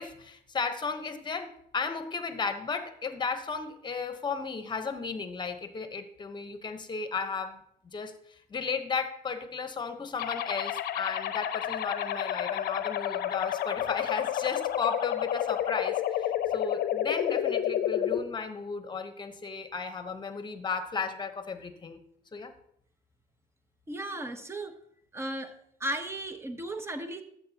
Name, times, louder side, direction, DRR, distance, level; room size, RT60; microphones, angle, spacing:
voice 1, 0.0-7.6 7.8-8.2 8.5-22.0 22.3-22.5, left 5 dB, 25° left, 9 dB, 1.0 m, -34 dB
sound 1, 10.2-18.2, left 10 dB, 65° left, 0.7 m, -30 dB
voice 2, 23.9-24.8 25.1-25.5 25.8-27.2, right 1 dB, 15° right, 8 dB, 0.9 m, -35 dB
12.0 x 7.5 x 2.9 m, 0.69 s
cardioid pair, 110°, 17 cm